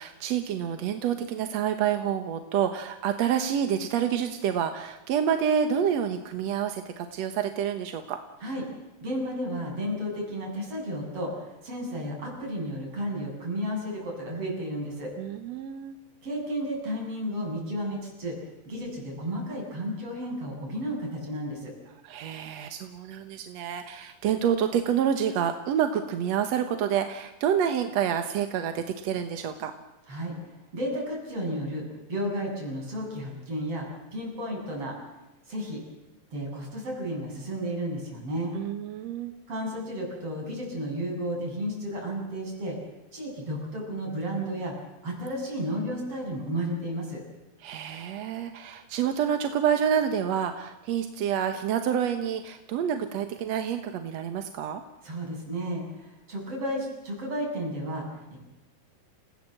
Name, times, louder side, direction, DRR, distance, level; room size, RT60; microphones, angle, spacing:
voice 1, 0.0-8.2 15.2-16.0 22.0-29.7 38.5-39.3 47.6-54.8, right 8 dB, 60° right, 7 dB, 1.9 m, -28 dB
voice 2, 9.0-15.1 16.2-18.4 18.7-21.7 30.1-35.0 35.5-35.8 36.3-38.6 39.5-42.8 43.1-44.7 45.0-47.2 55.0-58.4, equal, 40° right, -1 dB, 8.5 m, -33 dB
29.0 x 17.5 x 7.8 m, 1.0 s
omnidirectional pair, 4.1 m